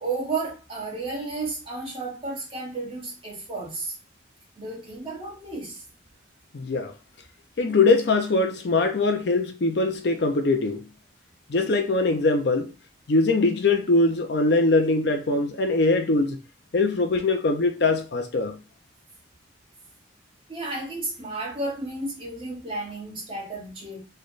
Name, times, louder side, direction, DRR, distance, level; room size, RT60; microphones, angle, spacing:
voice 1, 0.0-3.9 4.6-5.8 20.5-24.0, right 3 dB, 30° right, 1.2 m, -32 dB
voice 2, 6.5-6.9 7.6-10.8 11.5-12.7 13.1-16.4 16.7-18.6, left 3 dB, 60° left, 0.5 m, -22 dB
3.3 x 2.2 x 3.8 m
head